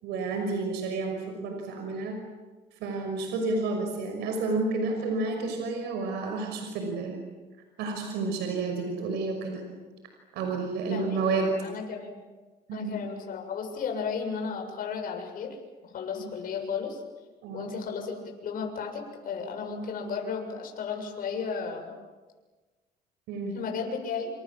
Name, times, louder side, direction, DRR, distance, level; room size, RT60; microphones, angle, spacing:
voice 1, 0.0-2.2 2.8-7.2 7.8-9.6 10.3-11.5 12.7-12.9 16.2-16.3 17.4-17.7 23.3-23.6, right 3 dB, 85° right, 4 dB, 5.9 m, -30 dB
voice 2, 10.9-12.2 12.7-15.6 15.9-17.0 17.5-21.9 23.5-24.3, left 5 dB, 55° left, 3 dB, 7.5 m, -34 dB
28.0 x 28.0 x 7.6 m, 1.3 s
cardioid pair, 110°, 17 cm